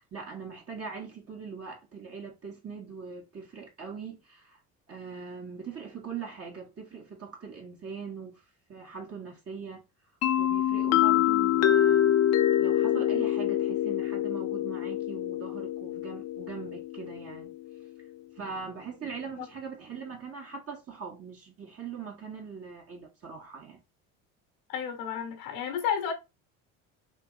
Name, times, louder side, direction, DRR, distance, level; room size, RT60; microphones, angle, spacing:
voice 1, 0.0-4.6 4.9-8.4 8.7-9.8 10.4-12.2 12.5-17.5 18.4-23.8, right 5 dB, 35° right, 1.8 m, -41 dB
sound 1, 10.2-17.9, left 11 dB, 40° left, 0.6 m, -26 dB
voice 2, 24.7-26.1, left 8 dB, 75° left, 1.4 m, -31 dB
3.7 x 3.0 x 3.9 m
hypercardioid pair, 70°, 41 cm